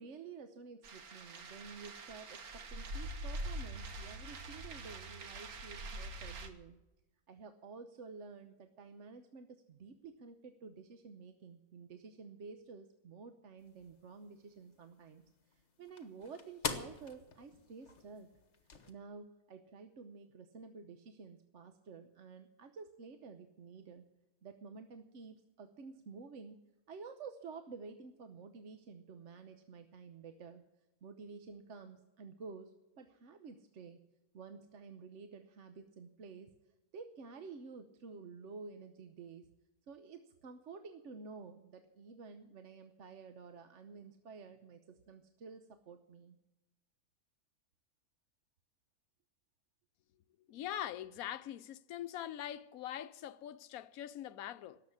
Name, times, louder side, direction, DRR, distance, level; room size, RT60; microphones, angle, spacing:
voice 1, 0.0-6.8 7.3-18.3 18.9-24.1 24.4-26.6 26.9-30.6 31.0-34.0 34.3-36.5 36.9-39.5 39.9-46.4, right 4 dB, 60° right, 1.1 m, -51 dB
sound 1, 0.8-6.5, right 1 dB, 80° right, 1.8 m, -44 dB
sound 2, 13.6-18.9, left 4 dB, 50° left, 1.7 m, -46 dB
voice 2, 50.5-54.8, left 11 dB, 80° left, 1.1 m, -43 dB
18.0 x 7.4 x 9.7 m
omnidirectional pair, 1.5 m